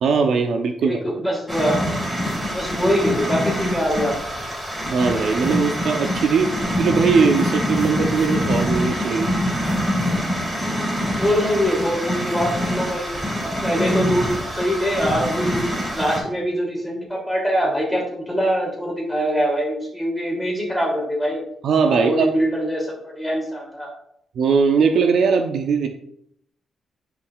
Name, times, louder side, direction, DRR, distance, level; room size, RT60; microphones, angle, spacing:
voice 1, 0.0-1.0 4.9-6.5 6.8-9.3 21.6-22.3 24.4-25.9, right 5 dB, 70° right, 5 dB, 0.7 m, -19 dB
voice 2, 0.8-2.1 2.4-4.4 11.0-13.1 13.4-21.4 21.8-23.9, equal, ahead, -3 dB, 3.0 m, -23 dB
sound 1, 1.5-16.2, equal, 15° right, 3.1 m, -25 dB
9.6 x 5.8 x 2.4 m, 0.70 s
cardioid pair, 120°, 0 cm